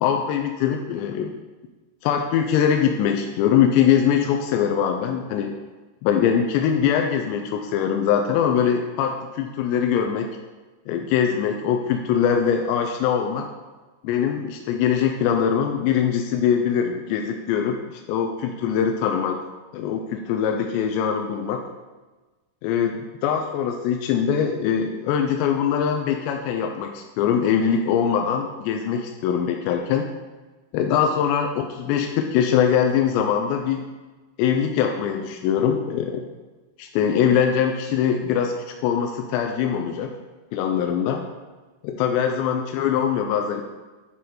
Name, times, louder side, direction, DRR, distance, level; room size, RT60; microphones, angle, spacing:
voice 1, 0.0-1.3 2.0-5.5 6.0-10.3 10.9-13.5 14.0-19.4 19.7-21.6 22.6-30.1 30.7-33.9 34.4-36.3 36.8-40.1 40.5-41.2 41.8-43.6, left 8 dB, 85° left, 4 dB, 2.5 m, -22 dB
9.2 x 4.2 x 4.8 m, 1.2 s
omnidirectional pair, 5.5 m